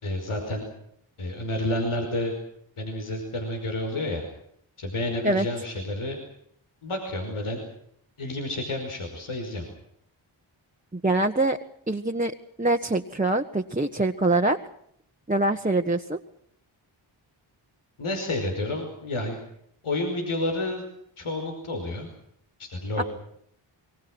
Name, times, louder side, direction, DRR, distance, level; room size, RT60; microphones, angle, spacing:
voice 1, 0.0-0.7 1.2-2.3 2.8-4.2 4.8-6.2 6.8-7.6 8.2-9.6 18.0-19.4 19.8-20.8 21.2-22.1 22.6-23.0, left 1 dB, 85° left, 3 dB, 5.5 m, -30 dB
voice 2, 10.9-11.6 11.9-12.3 12.6-14.6 15.3-16.2 23.0-23.1, right 2 dB, 15° right, 3 dB, 1.5 m, -24 dB
26.5 x 23.0 x 6.3 m, 0.70 s
cardioid pair, 45°, 49 cm